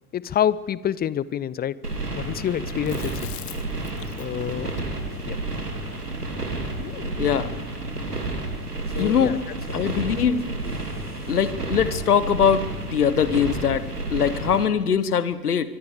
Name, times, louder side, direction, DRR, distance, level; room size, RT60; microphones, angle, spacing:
voice 1, 0.1-1.8 2.2-3.3 4.2-4.7 5.2-5.4 8.9-9.4 9.7-9.9 11.2-11.3, left 10 dB, 20° left, 19 dB, 0.6 m, -27 dB
sound 1, 1.8-14.7, right 2 dB, 90° right, 2.7 m, -31 dB
Chewing mastication, 2.9-7.3, left 14 dB, 55° left, 1.5 m, -44 dB
voice 2, 7.2-7.5 9.0-9.4 9.7-10.4 11.3-15.7, left 7 dB, 80° left, 15 dB, 1.4 m, -22 dB
25.0 x 23.5 x 5.0 m, 1.2 s
figure-of-eight pair, 75°, 45 cm